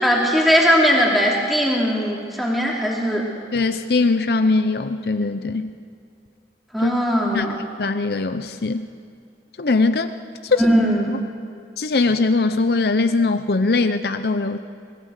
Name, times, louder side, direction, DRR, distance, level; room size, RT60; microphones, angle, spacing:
voice 1, 0.0-3.3 6.7-7.6 10.6-11.1, equal, ahead, -3 dB, 3.1 m, -19 dB
voice 2, 3.5-5.7 6.8-6.9 7.3-7.5 7.8-8.9 9.6-10.1 10.4-10.6 11.8-14.6, left 3 dB, 65° left, 9 dB, 0.7 m, -20 dB
26.0 x 19.0 x 6.6 m, 2.3 s
head